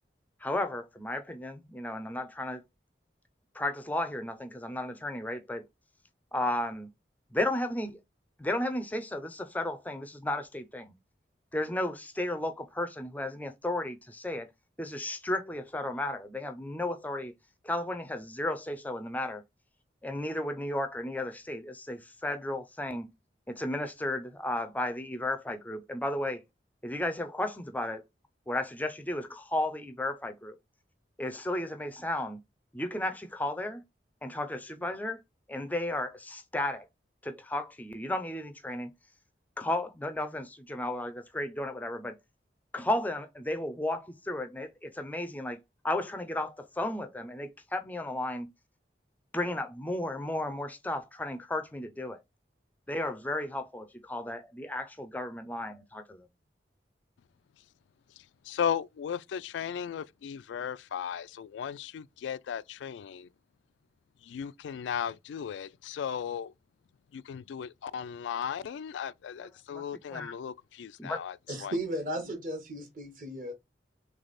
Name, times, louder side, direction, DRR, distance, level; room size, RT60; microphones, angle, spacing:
voice 1, 0.4-2.6 3.5-5.6 6.3-6.9 7.3-8.0 8.4-10.9 11.5-14.5 14.8-17.3 17.6-19.4 20.0-23.1 23.5-26.4 26.8-28.0 28.5-30.6 31.2-32.4 32.7-33.8 34.2-35.2 35.5-36.9 37.2-38.9 39.6-42.2 42.7-45.6 45.8-48.5 49.3-52.2 52.9-56.3 69.7-69.8 70.1-70.3 71.0-71.2, left 1 dB, 10° left, 0.4 m, -34 dB
voice 2, 58.2-63.3 64.2-66.5 67.1-71.7, left 8 dB, 90° left, 0.3 m, -36 dB
voice 3, 71.5-73.5, right 1 dB, 45° right, 1.2 m, -35 dB
3.3 x 3.3 x 4.0 m
head